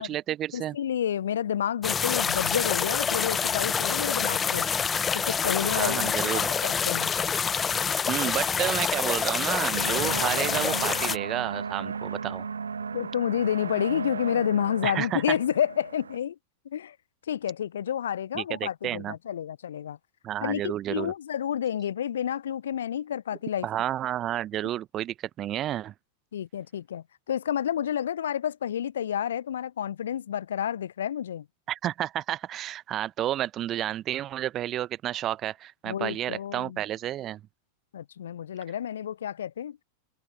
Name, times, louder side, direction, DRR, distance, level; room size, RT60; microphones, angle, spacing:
voice 1, 0.0-0.8 5.6-6.5 8.1-12.5 14.8-15.4 18.3-19.1 20.2-21.1 23.6-25.9 31.7-37.4, right 12 dB, 30° right, 1.0 m, -31 dB
voice 2, 0.5-4.8 5.1-7.1 12.9-16.4 16.6-17.0 17.3-20.0 20.4-23.7 26.3-31.5 35.8-36.8 37.9-39.8, left 9 dB, 65° left, 0.8 m, -30 dB
sound 1, 1.8-11.2, left 6 dB, 20° left, 0.8 m, -27 dB
sound 2, 9.7-16.2, right 5 dB, 75° right, 1.1 m, -35 dB
open air
figure-of-eight pair, 90°, 0 cm